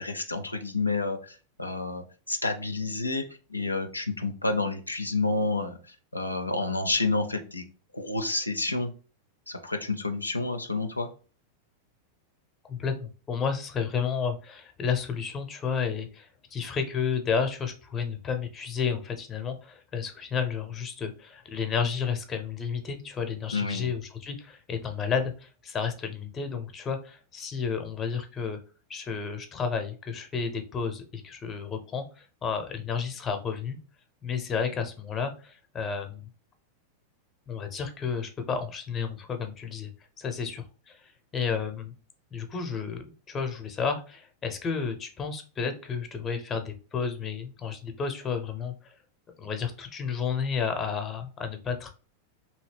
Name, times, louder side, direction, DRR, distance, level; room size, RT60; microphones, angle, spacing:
voice 1, 0.0-3.2 3.5-7.6 7.9-8.9 9.5-11.1 23.5-23.9, left 3 dB, 85° left, 6 dB, 0.4 m, -29 dB
voice 2, 12.7-28.6 28.9-33.8 34.2-36.3 37.5-39.9 40.2-41.9 42.3-48.9 49.4-51.9, left 6 dB, 20° left, 7 dB, 0.6 m, -31 dB
2.8 x 2.7 x 3.2 m, 0.36 s
figure-of-eight pair, 90°, 0 cm